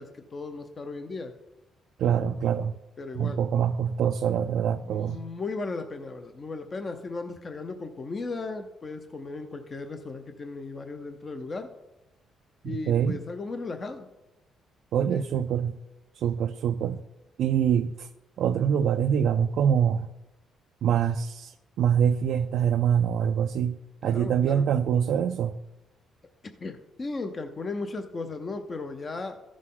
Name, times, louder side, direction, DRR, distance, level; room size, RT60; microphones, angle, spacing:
voice 1, 0.0-1.3 3.0-3.4 4.8-11.7 12.6-14.1 15.1-15.4 24.0-24.7 26.6-29.4, left 3 dB, 30° left, 7 dB, 0.6 m, -36 dB
voice 2, 2.0-2.7 3.2-5.2 12.6-13.2 14.9-15.7 16.1-17.0 17.4-18.1 18.4-20.1 20.8-23.8 24.0-25.5, right 8 dB, 70° right, 7 dB, 0.4 m, -25 dB
14.5 x 6.3 x 3.8 m, 1.0 s
cardioid pair, 130°, 0 cm